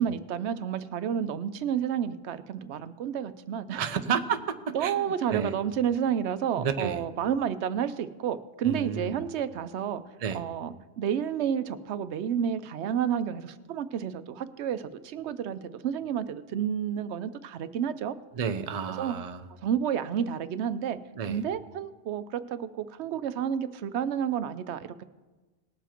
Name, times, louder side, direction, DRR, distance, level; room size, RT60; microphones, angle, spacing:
voice 1, 0.0-3.8 4.7-10.0 10.3-18.2 19.0-19.1 19.6-21.0 21.3-25.0, right 8 dB, 80° right, 13 dB, 0.9 m, -30 dB
voice 2, 3.8-4.4 4.8-5.5 6.6-7.0 8.6-9.2 10.2-10.4 18.4-19.4 21.2-21.4, right 7 dB, 40° right, 8 dB, 0.6 m, -31 dB
19.0 x 7.0 x 4.4 m, 1.2 s
omnidirectional pair, 1.1 m